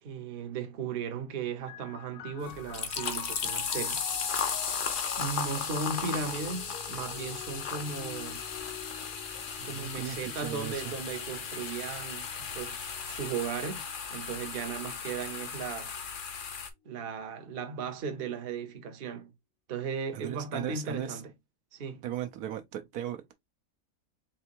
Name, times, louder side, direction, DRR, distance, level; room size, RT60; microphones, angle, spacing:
voice 1, 0.0-4.0 5.2-8.4 9.6-13.8 14.1-15.9 16.8-19.3 19.7-21.3 21.7-22.0, right 6 dB, 45° right, 0.9 m, -36 dB
sound 1, 1.7-14.9 15.8-16.5, left 11 dB, 80° left, 1.1 m, -48 dB
sound 2, 2.4-16.7, left 6 dB, 50° left, 0.6 m, -36 dB
voice 2, 9.6-10.2 10.4-10.9 20.1-21.2 22.0-23.3, right 11 dB, 75° right, 1.1 m, -37 dB
4.5 x 3.3 x 2.8 m
omnidirectional pair, 1.6 m